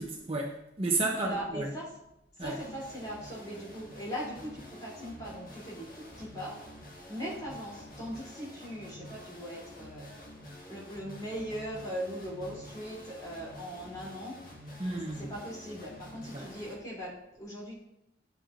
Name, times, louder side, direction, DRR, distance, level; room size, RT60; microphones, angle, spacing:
voice 1, 0.0-1.7 2.4-2.6 14.8-15.3 16.3-16.5, right 2 dB, 30° right, 0 dB, 0.8 m, -32 dB
voice 2, 1.1-1.8 2.4-6.6 7.1-10.1 10.7-14.4 15.1-17.8, equal, 20° left, -6 dB, 3.1 m, -40 dB
sound 1, 2.4-16.7, left 1 dB, 45° left, 1.7 m, -48 dB
10.0 x 8.2 x 2.5 m, 0.82 s
head